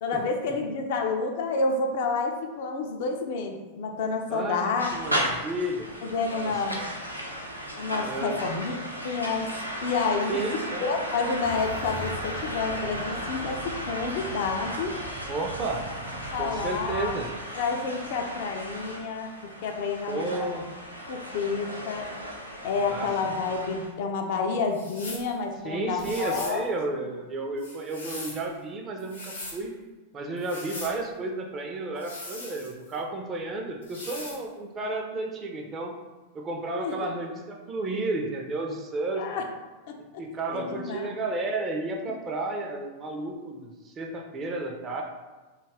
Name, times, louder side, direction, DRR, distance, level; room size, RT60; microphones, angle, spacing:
voice 1, 0.0-4.9 6.0-6.8 7.7-8.8 9.0-9.5 9.8-10.4 10.8-14.9 16.3-17.1 17.6-20.7 21.1-22.1 22.6-26.6 36.7-37.1 39.2-39.4 39.9-40.2 40.5-41.1 42.1-42.2, left 4 dB, 50° left, 3 dB, 0.3 m, -29 dB
voice 2, 4.3-5.9 6.3-6.9 8.0-8.4 10.3-10.9 15.3-15.9 16.4-17.3 20.1-20.6 22.9-23.1 25.6-29.8 30.1-35.9 36.3-39.2 40.2-45.0, right 2 dB, 25° right, 1 dB, 0.4 m, -32 dB
sound 1, 4.8-23.9, equal, 90° right, 0.4 m, -35 dB
sound 2, 11.4-17.2, right 2 dB, 60° right, 0.9 m, -41 dB
sound 3, 24.7-25.3 26.0-26.6 27.6-28.4 29.0-29.6 30.4-31.0 32.0-33.0 33.8-34.4, left 2 dB, 75° left, 0.8 m, -40 dB
2.3 x 2.1 x 3.3 m, 1.2 s
figure-of-eight pair, 90°, 0 cm